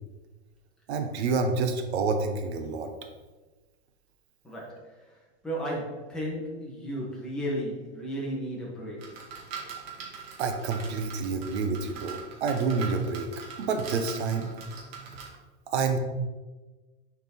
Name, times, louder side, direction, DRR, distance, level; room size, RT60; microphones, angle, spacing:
voice 1, 0.9-2.9 10.4-13.3 13.6-14.5 15.0-15.1 15.7-16.0, right 4 dB, 85° right, 6 dB, 1.1 m, -28 dB
voice 2, 4.4-4.9 5.4-9.2, equal, ahead, -6 dB, 1.9 m, -34 dB
sound 1, 9.0-15.3, right 5 dB, 65° right, 2.0 m, -42 dB
6.8 x 4.5 x 4.2 m, 1.2 s
supercardioid pair, 140°, 32 cm